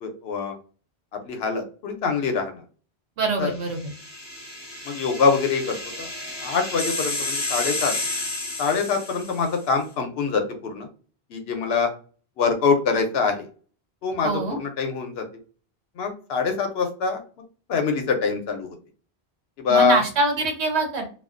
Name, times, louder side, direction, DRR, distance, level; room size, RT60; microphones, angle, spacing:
voice 1, 0.0-0.6 1.2-2.6 3.4-3.5 4.9-6.1 6.4-7.9 8.6-10.9 11.3-11.9 12.4-13.5 14.0-15.2 16.0-17.2 17.7-18.8 19.6-20.0, left 5 dB, 70° left, 5 dB, 0.8 m, -24 dB
voice 2, 3.2-3.9 14.2-14.6 19.7-21.1, right 3 dB, 80° right, 3 dB, 1.0 m, -24 dB
sound 1, 3.6-9.6, left 2 dB, 15° left, 0.8 m, -31 dB
2.4 x 2.2 x 2.4 m, 0.39 s
omnidirectional pair, 1.1 m